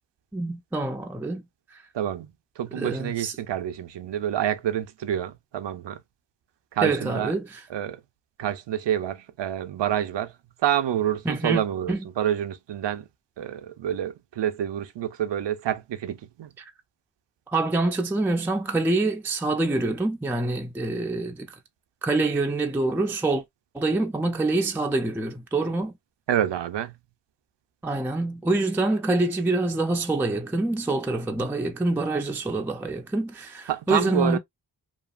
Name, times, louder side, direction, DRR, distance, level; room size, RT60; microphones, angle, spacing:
voice 1, 0.3-1.5 1.7-1.8 2.7-3.4 6.8-7.6 11.3-11.6 11.9-12.0 16.6-16.7 17.5-21.6 22.0-23.4 23.7-25.9 27.8-34.4, right 2 dB, 5° right, 0.3 m, -26 dB
voice 2, 1.9-2.3 2.6-6.0 6.7-7.3 7.7-8.0 8.4-10.3 10.6-13.1 13.4-16.5 26.3-26.9 33.7-34.4, right 10 dB, 80° right, 0.5 m, -28 dB
2.8 x 2.3 x 2.3 m
wide cardioid pair, 90°, 43 cm